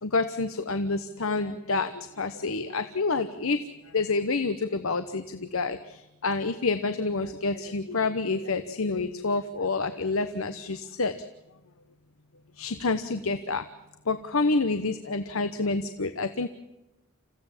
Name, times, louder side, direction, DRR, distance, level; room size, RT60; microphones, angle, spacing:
voice 1, 0.0-3.6 3.9-11.2 12.6-13.7 14.1-16.5, left 3 dB, 65° left, 10 dB, 1.0 m, -28 dB
28.0 x 15.5 x 7.4 m, 0.98 s
head